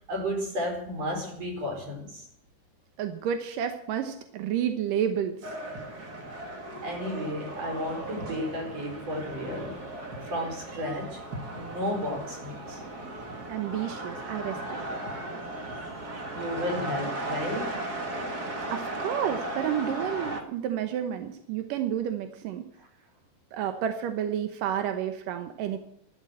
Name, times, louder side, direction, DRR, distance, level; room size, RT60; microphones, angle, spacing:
voice 1, 0.1-2.3 6.8-9.8 10.2-11.2 11.5-12.8 16.3-17.7, equal, 35° right, 1 dB, 5.4 m, -33 dB
voice 2, 3.0-5.5 13.5-14.6 18.7-22.6 23.5-25.8, right 9 dB, 70° right, 7 dB, 2.1 m, -30 dB
sound 1, 5.4-20.4, right 1 dB, 55° right, 1.0 m, -36 dB
13.5 x 12.0 x 7.6 m, 0.72 s
omnidirectional pair, 5.1 m